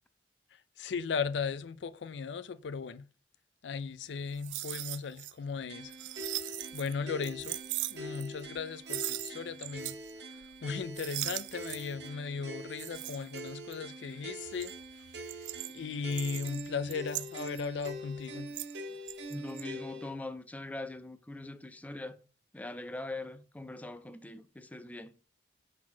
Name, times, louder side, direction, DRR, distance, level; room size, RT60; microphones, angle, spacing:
voice 1, 0.8-3.1 3.6-5.9 6.7-7.6 7.9-10.0 10.6-14.7 15.1-15.5 15.7-18.5, left 5 dB, 80° left, 0.4 m, -37 dB
sound 1, 4.2-5.3 5.6-6.9 7.2-8.6 8.9-10.1 10.4-10.7 11.0-12.0 12.7-13.9 14.4-18.8 19.1-19.6, right 17 dB, 85° right, 0.3 m, -40 dB
sound 2, 5.7-20.1, right 1 dB, 70° right, 1.0 m, -44 dB
voice 2, 19.3-22.2 22.5-25.1, left 2 dB, 10° left, 0.4 m, -42 dB
6.0 x 4.1 x 4.4 m
head